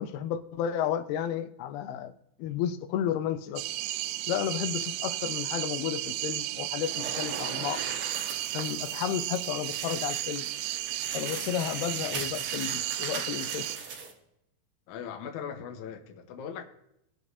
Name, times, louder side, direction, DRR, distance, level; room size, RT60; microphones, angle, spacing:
voice 1, 0.0-2.1 2.4-3.6 4.3-7.9 8.5-10.5 11.1-13.7, left 10 dB, 90° left, 2.6 m, -32 dB
sound 1, 3.6-13.8, right 14 dB, 85° right, 2.5 m, -34 dB
sound 2, 6.8-14.1, right 5 dB, 70° right, 1.2 m, -39 dB
voice 2, 14.9-16.6, left 7 dB, 70° left, 2.1 m, -40 dB
20.0 x 7.9 x 2.7 m
omnidirectional pair, 4.4 m